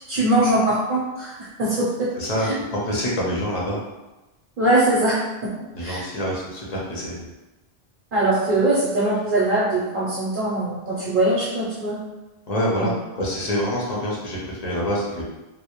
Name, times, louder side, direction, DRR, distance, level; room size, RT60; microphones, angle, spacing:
voice 1, 0.1-2.1 2.4-2.5 4.6-5.5 5.8-6.1 8.1-12.0 12.8-12.9, right 1 dB, 60° right, -7 dB, 0.7 m, -22 dB
voice 2, 2.1-2.5 2.8-3.8 5.7-7.3 12.5-15.2, equal, 50° left, -5 dB, 0.6 m, -26 dB
2.1 x 2.0 x 2.8 m, 1.1 s
omnidirectional pair, 1.1 m